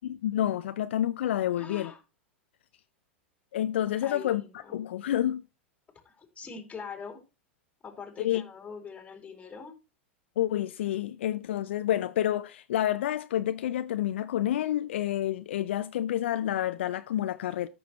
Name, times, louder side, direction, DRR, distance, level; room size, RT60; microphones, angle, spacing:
voice 1, 0.2-1.9 3.5-4.4 4.7-5.4 8.2-8.4 10.4-17.7, left 12 dB, 65° left, 0.5 m, -29 dB
voice 2, 1.5-2.0 4.0-4.9 6.0-7.2 7.8-9.8, left 5 dB, 20° left, 2.6 m, -43 dB
14.0 x 6.2 x 3.0 m
hypercardioid pair, 95°, 7 cm